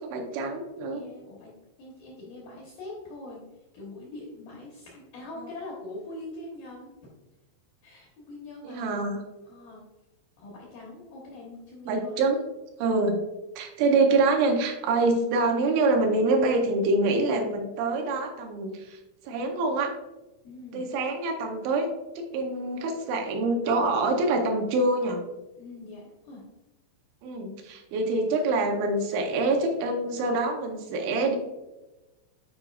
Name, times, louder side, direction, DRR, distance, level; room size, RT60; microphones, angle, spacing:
voice 1, 0.0-1.0 8.7-9.2 11.9-12.4 12.8-13.2 13.6-19.0 19.2-19.9 20.7-21.9 22.2-25.2 27.2-31.4, right 3 dB, 80° right, 2 dB, 3.0 m, -25 dB
voice 2, 0.9-1.5 1.8-6.9 7.8-8.8 9.5-9.8 10.4-12.1 20.4-20.9 25.6-26.5 30.2-30.3, left 2 dB, 75° left, -4 dB, 2.2 m, -43 dB
9.6 x 4.9 x 2.3 m, 1.1 s
omnidirectional pair, 5.6 m